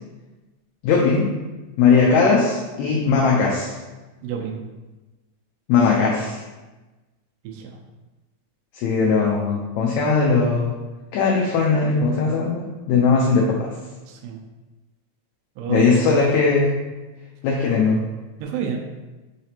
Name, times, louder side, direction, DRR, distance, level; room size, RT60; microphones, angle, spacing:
voice 1, 0.8-1.2 1.8-3.8 5.7-6.4 8.7-10.7 11.1-13.7 15.7-16.7 17.4-18.0, left 4 dB, 80° left, -3 dB, 1.7 m, -19 dB
voice 2, 4.2-4.6 7.4-7.7 14.0-14.4 15.6-15.9 18.4-18.8, right 8 dB, 85° right, 1 dB, 1.5 m, -29 dB
4.9 x 3.3 x 2.8 m, 1.1 s
omnidirectional pair, 3.5 m